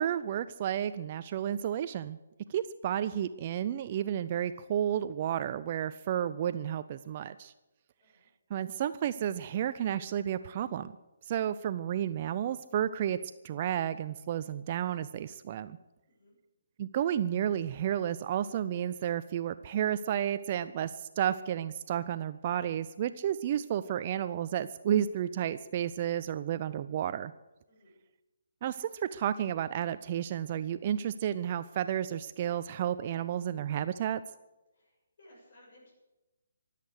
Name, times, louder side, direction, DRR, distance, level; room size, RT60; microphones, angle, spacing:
voice 1, 0.0-2.2 2.5-7.5 8.5-10.9 11.3-13.2 13.4-15.8 16.8-27.3 28.6-34.2, right 10 dB, 35° right, 12 dB, 0.5 m, -32 dB
voice 2, 16.1-16.4 27.7-28.0 34.7-35.9, left 1 dB, 50° left, -3 dB, 6.9 m, -60 dB
24.0 x 8.3 x 6.6 m, 1.0 s
figure-of-eight pair, 140°, 0 cm